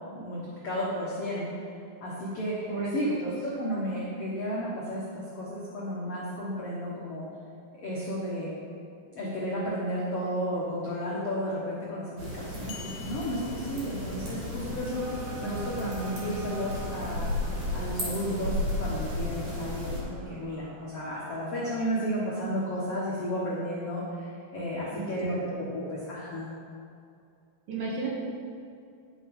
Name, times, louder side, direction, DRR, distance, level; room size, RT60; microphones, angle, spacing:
voice 1, 0.1-1.6 2.0-3.1 3.4-7.2 7.8-8.5 9.1-12.7 13.1-17.3 17.7-26.5, equal, 65° left, -7 dB, 1.5 m, -33 dB
voice 2, 2.7-3.3 24.9-25.6 27.7-28.1, right 3 dB, 65° right, -4 dB, 2.8 m, -33 dB
sound 1, 12.2-20.0, left 1 dB, 40° right, 3.3 m, -34 dB
sound 2, 12.7-14.5, left 9 dB, 80° left, 2.5 m, -48 dB
sound 3, 14.9-21.8, right 4 dB, 80° right, 2.9 m, -46 dB
11.5 x 6.0 x 5.4 m, 2.5 s
omnidirectional pair, 5.0 m